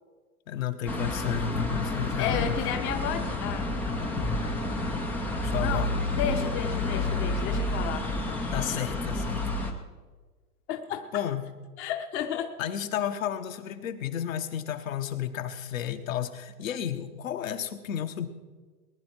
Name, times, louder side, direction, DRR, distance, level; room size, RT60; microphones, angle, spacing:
voice 1, 0.5-2.6 5.4-5.9 8.5-9.4 11.1-11.4 12.6-18.3, left 9 dB, 60° left, 7 dB, 1.4 m, -32 dB
sound 1, 0.9-9.7, left 2 dB, 5° left, 0.4 m, -30 dB
voice 2, 2.2-3.7 5.6-8.1 10.7-11.2 11.8-12.5, left 8 dB, 25° left, 5 dB, 0.9 m, -32 dB
20.0 x 10.5 x 4.5 m, 1.4 s
hypercardioid pair, 130°, 45 cm